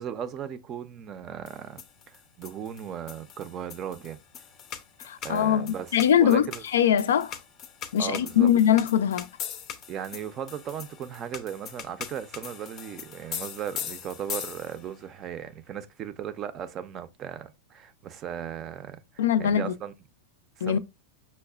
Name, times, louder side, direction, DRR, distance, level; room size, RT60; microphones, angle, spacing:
voice 1, 0.0-1.8 2.1-4.2 5.2-6.6 8.0-8.5 9.9-19.9 20.6-20.8, right 9 dB, 30° right, 0.4 m, -37 dB
sound 1, 1.5-15.0, left 9 dB, 35° left, 0.5 m, -41 dB
voice 2, 5.0-7.4 7.9-9.3 19.2-19.7 20.6-20.8, left 9 dB, 90° left, 0.4 m, -22 dB
5.4 x 2.1 x 2.3 m
supercardioid pair, 140°, 0 cm